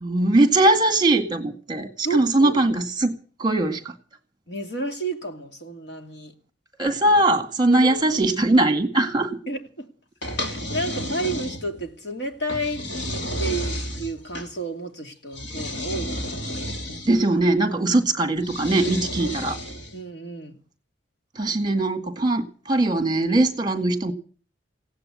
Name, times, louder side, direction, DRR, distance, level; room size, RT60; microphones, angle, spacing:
voice 1, 0.0-3.1 3.4-3.9 6.8-9.4 17.0-19.6 21.4-24.1, right 2 dB, 25° right, 8 dB, 1.9 m, -21 dB
voice 2, 2.0-2.6 4.5-6.3 7.7-8.2 9.5-9.9 10.4-12.9 13.4-16.6 17.9-18.0 19.2-19.3 19.9-20.5, right 2 dB, 65° left, 4 dB, 2.7 m, -31 dB
sound 1, 10.2-11.9 12.5-14.5 15.3-17.2 18.4-20.0, equal, 85° left, 2.9 m, -31 dB
16.5 x 9.6 x 8.6 m, 0.41 s
head